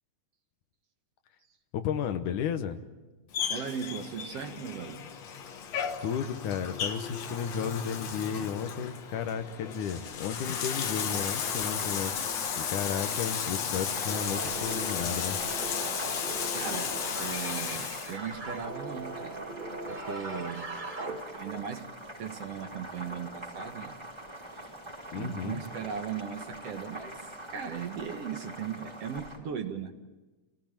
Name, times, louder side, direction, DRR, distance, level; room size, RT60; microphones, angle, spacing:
voice 1, 1.7-2.8 6.0-12.1 12.6-15.4 25.1-25.6, left 7 dB, 85° left, 9 dB, 2.7 m, -33 dB
Bathtub (filling or washing), 3.3-18.2, left 7 dB, 60° left, 2.6 m, -34 dB
voice 2, 3.5-5.0 16.5-19.4 19.9-20.7 21.1-21.9 22.2-23.9 24.5-24.6 25.1-29.9, right 7 dB, 60° right, 6 dB, 2.1 m, -38 dB
Boiling, 11.2-29.4, right 1 dB, 10° right, 3.9 m, -45 dB
sound 1, 14.1-21.7, right 2 dB, 25° right, 1.0 m, -40 dB
28.5 x 18.0 x 8.9 m, 1.2 s
omnidirectional pair, 3.5 m